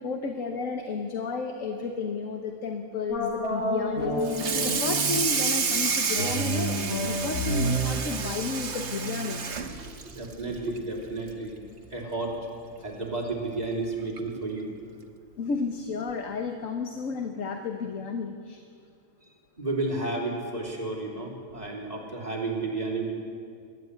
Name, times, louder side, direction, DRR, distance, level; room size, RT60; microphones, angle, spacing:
voice 1, 0.0-9.7 15.4-18.6, left 4 dB, 70° left, 4 dB, 1.5 m, -32 dB
sound 1, 3.1-5.4 6.1-9.5, right 1 dB, 85° left, 3.7 m, -30 dB
Water tap faucet / Sink (filling or washing), 4.2-10.9 11.3-11.5 11.9-12.0 12.4-12.5 13.6-13.7 14.2-14.4, right 5 dB, 55° right, 1.5 m, -30 dB
voice 2, 10.1-11.6 11.9-12.4 12.8-14.7 19.6-23.1, right 3 dB, 30° right, -2 dB, 3.2 m, -32 dB
22.5 x 12.5 x 9.4 m, 2.4 s
omnidirectional pair, 1.4 m